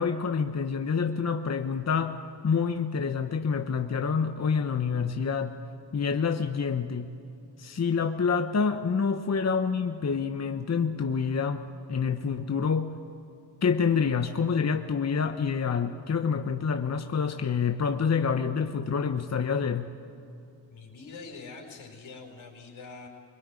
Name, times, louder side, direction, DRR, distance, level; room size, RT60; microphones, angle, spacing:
voice 1, 0.0-2.2 2.4-5.6 5.9-7.1 7.6-13.0 13.6-19.9, left 6 dB, 35° left, 7 dB, 1.1 m, -27 dB
voice 2, 20.7-23.1, left 4 dB, 75° left, 1 dB, 5.0 m, -44 dB
23.0 x 21.0 x 9.8 m, 2.7 s
cardioid pair, 60°, 47 cm